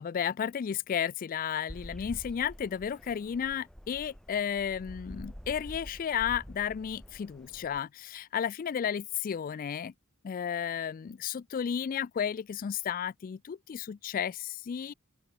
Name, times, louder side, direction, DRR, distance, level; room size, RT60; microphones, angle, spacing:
voice 1, 0.0-9.9 10.2-14.9, left 8 dB, 40° left, 0.3 m, -33 dB
sound 1, 1.7-7.8, equal, 5° left, 1.2 m, -47 dB
open air
head